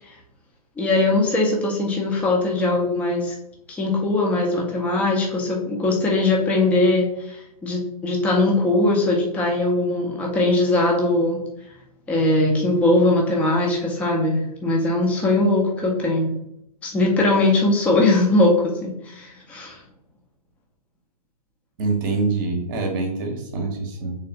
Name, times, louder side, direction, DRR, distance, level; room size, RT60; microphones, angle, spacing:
voice 1, 0.8-3.3 3.7-11.4 12.1-16.4 16.8-19.8, left 2 dB, 5° left, -1 dB, 0.5 m, -20 dB
voice 2, 21.8-24.2, right 3 dB, 30° right, 3 dB, 0.8 m, -25 dB
3.4 x 3.1 x 2.9 m, 0.77 s
figure-of-eight pair, 125°, 20 cm